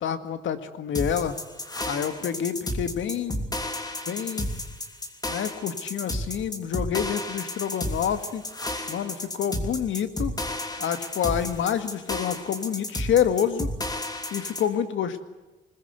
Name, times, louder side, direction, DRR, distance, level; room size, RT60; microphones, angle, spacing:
voice 1, 0.0-1.4 1.9-3.5 4.1-4.6 5.3-8.4 8.9-10.3 10.8-13.7 14.3-15.2, left 8 dB, 70° left, 10 dB, 1.9 m, -28 dB
sound 1, 0.9-14.7, left 1 dB, 20° left, 3.1 m, -32 dB
21.5 x 20.0 x 8.2 m, 1.2 s
cardioid pair, 100°, 21 cm